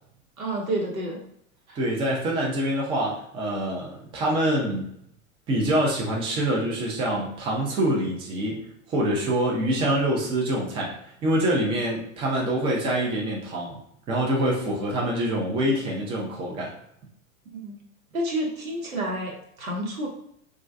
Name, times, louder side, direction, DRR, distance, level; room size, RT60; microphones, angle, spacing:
voice 1, 0.4-1.2 1.7-1.8 17.5-17.8 18.1-20.1, right 1 dB, 85° right, -1 dB, 0.9 m, -29 dB
voice 2, 1.7-4.9 5.5-10.9 11.2-13.8 14.1-16.7, right 1 dB, 15° right, -2 dB, 0.4 m, -25 dB
2.2 x 2.2 x 2.5 m, 0.72 s
figure-of-eight pair, 95°, 41 cm